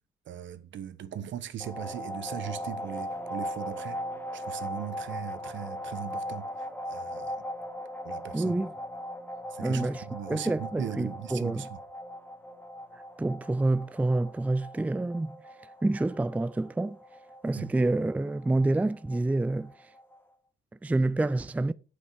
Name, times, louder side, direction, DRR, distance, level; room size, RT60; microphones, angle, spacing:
voice 1, 0.3-4.0 4.3-7.3 8.0-8.5 9.5-11.7 17.5-17.6, right 9 dB, 70° right, 1.2 m, -39 dB
sound 1, 1.6-20.2, equal, 10° left, 1.5 m, -39 dB
voice 2, 8.3-8.7 9.6-10.0 10.3-11.7 13.2-15.4 15.8-17.0 17.4-19.7 20.8-21.7, right 2 dB, 5° right, 0.4 m, -27 dB
8.5 x 8.4 x 4.8 m
cardioid pair, 90°, 20 cm